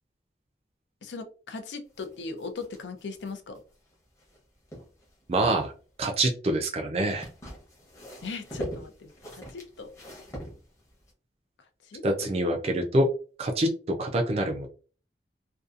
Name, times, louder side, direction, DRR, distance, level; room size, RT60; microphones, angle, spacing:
voice 1, 1.0-3.6 8.2-9.9 11.8-12.3, left 4 dB, 90° left, 7 dB, 0.5 m, -39 dB
sound 1, 2.0-4.4 4.7-5.7 7.0-11.1, equal, 15° left, 0.7 m, -42 dB
voice 2, 5.3-5.7 6.0-7.3 12.0-13.1 13.4-13.7 14.0-14.7, right 1 dB, 35° right, 3 dB, 0.3 m, -25 dB
2.6 x 2.2 x 2.4 m, 0.38 s
head